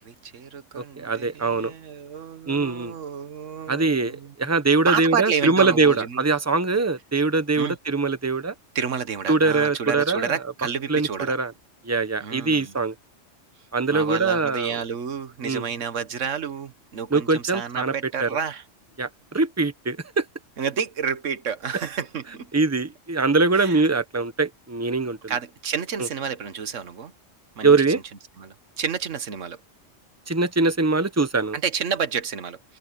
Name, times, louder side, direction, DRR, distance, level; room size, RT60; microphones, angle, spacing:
voice 1, 0.0-4.3 4.8-6.2 7.6-7.8 8.7-11.4 12.2-12.7 13.9-18.6 20.6-22.5 23.5-23.8 25.3-27.1 27.6-27.8 28.4-29.6 31.5-32.8, right 7 dB, 75° right, 1.5 m, -30 dB
voice 2, 0.7-1.7 2.5-2.9 3.7-8.5 9.3-10.3 10.9-11.5 11.8-12.9 13.7-14.7 15.4-15.6 17.1-18.3 19.0-20.2 22.5-25.2 26.0-26.1 27.6-28.0 30.3-31.6, right 3 dB, 15° right, 1.1 m, -22 dB
open air
omnidirectional pair, 1.3 m